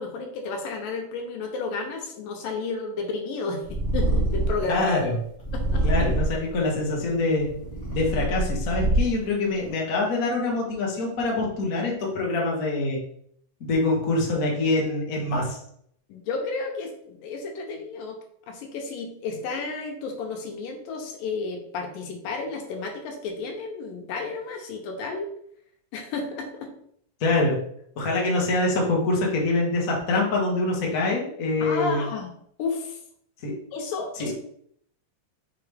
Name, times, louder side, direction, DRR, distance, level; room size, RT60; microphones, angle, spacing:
voice 1, 0.0-4.9 5.5-5.8 16.1-18.2 18.5-25.3 25.9-26.7 31.6-32.3 32.6-33.0 33.7-34.3, left 4 dB, 80° left, 3 dB, 2.7 m, -32 dB
Purr, 3.6-4.7 5.4-6.5 7.2-9.3, right 1 dB, 15° left, 1.6 m, -25 dB
voice 2, 4.7-5.1 5.8-7.6 7.9-13.0 13.6-15.6 27.2-27.6 28.0-32.1 33.4-33.5 34.2-34.3, left 2 dB, 50° left, -2 dB, 1.0 m, -25 dB
6.1 x 4.8 x 3.5 m, 0.67 s
omnidirectional pair, 3.9 m